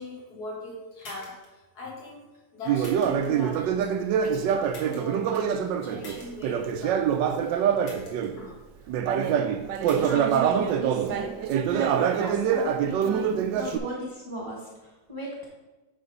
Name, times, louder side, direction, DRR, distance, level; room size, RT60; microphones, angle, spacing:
voice 1, 0.0-2.3 2.5-3.9 4.2-7.4 8.4-8.5 9.7-9.9 13.6-13.7, left 1 dB, 55° left, -3 dB, 2.4 m, -40 dB
sound 1, 1.0-1.5 2.8-3.3 4.7-5.2 6.0-6.3 7.8-8.3 9.8-10.1, left 1 dB, 70° left, 2.4 m, -45 dB
Conversation, 2.7-8.4 8.9-13.8, right 8 dB, 80° right, 1.2 m, -25 dB
voice 2, 9.8-11.3 11.7-15.5, right 1 dB, 20° right, -3 dB, 0.8 m, -37 dB
8.6 x 3.7 x 5.3 m, 1.1 s
omnidirectional pair, 2.0 m